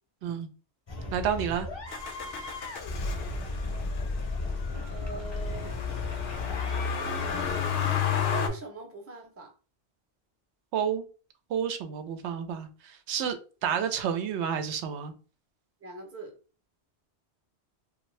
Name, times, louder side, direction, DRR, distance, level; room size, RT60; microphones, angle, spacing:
sound 1, 0.9-7.6, left 2 dB, 30° left, 0.6 m, -38 dB
voice 1, 1.1-1.7 10.7-11.1 11.5-13.4 13.6-15.1, right 8 dB, 85° right, 0.9 m, -30 dB
Motor vehicle (road), 1.9-8.5, left 6 dB, 70° left, 0.8 m, -31 dB
voice 2, 4.9-5.9 8.3-9.5 15.8-16.3, right 3 dB, 20° right, 0.5 m, -41 dB
2.6 x 2.2 x 3.1 m
omnidirectional pair, 1.1 m